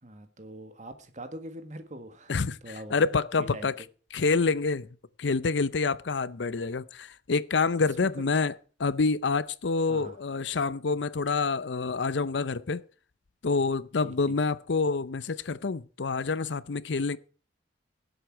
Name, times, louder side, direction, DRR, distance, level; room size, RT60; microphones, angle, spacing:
voice 1, 0.0-3.0 3.3-3.9 8.0-8.1 9.9-10.2 14.0-14.4, right 1 dB, 40° right, 1.6 m, -43 dB
voice 2, 2.9-3.7 4.1-4.9 5.2-8.5 8.8-12.8 13.4-17.2, left 4 dB, 80° left, 0.6 m, -27 dB
17.5 x 8.0 x 4.6 m
head